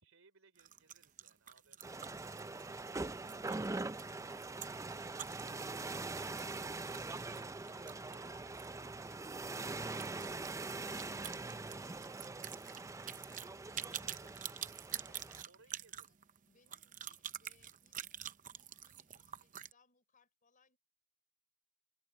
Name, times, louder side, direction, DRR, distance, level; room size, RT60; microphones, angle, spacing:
voice 1, 0.0-3.5 8.0-8.5 13.4-14.6 15.5-16.1, right 3 dB, 75° right, 3.9 m, -69 dB
sound 1, 0.6-8.7 9.0-9.1 9.4-9.5 9.9-19.7, right 10 dB, 40° right, 0.8 m, -47 dB
sound 2, 1.8-15.4, right 3 dB, 15° right, 0.4 m, -43 dB
voice 2, 7.6-9.0 15.1-15.8 16.1-16.2 16.5-20.8, left 5 dB, 40° left, 6.0 m, -73 dB
open air
head